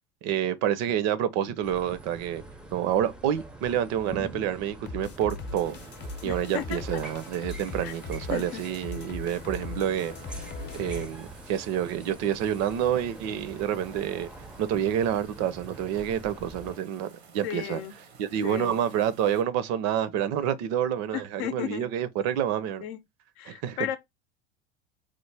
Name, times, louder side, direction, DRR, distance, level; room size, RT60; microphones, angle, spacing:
voice 1, 0.2-2.4 2.7-5.8 6.2-10.5 10.7-14.3 14.6-17.8 18.2-22.8 23.5-23.8, right 10 dB, 55° right, 0.6 m, -28 dB
sound 1, 1.6-16.8, right 2 dB, 5° right, 0.5 m, -45 dB
sound 2, 4.9-11.1, left 2 dB, 35° left, 0.7 m, -39 dB
sound 3, 5.6-19.4, right 5 dB, 90° right, 1.1 m, -53 dB
voice 2, 6.2-7.0 7.8-7.9 8.3-8.6 17.4-17.9 18.4-18.8 21.1-21.9 22.8-23.0 23.4-24.0, left 11 dB, 75° left, 0.6 m, -34 dB
3.2 x 2.1 x 3.2 m
hypercardioid pair, 95°, 32 cm